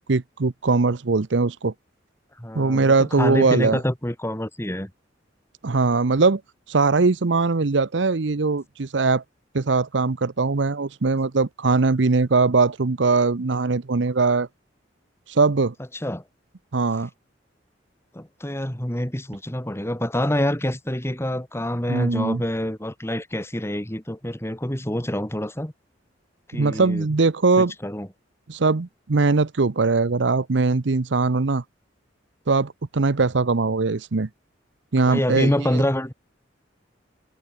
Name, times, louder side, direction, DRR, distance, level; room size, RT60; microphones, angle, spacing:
voice 1, 0.0-1.7 2.5-3.8 5.6-6.4 6.7-9.2 9.5-14.5 15.3-15.7 16.7-17.1 21.9-22.4 26.5-27.7 28.5-31.6 32.5-34.3 34.9-35.8, right 4 dB, 75° right, 0.8 m, -21 dB
voice 2, 2.4-4.9 16.0-16.2 18.1-25.7 26.5-27.1 27.6-28.1 35.1-36.1, left 1 dB, 15° left, 2.6 m, -26 dB
head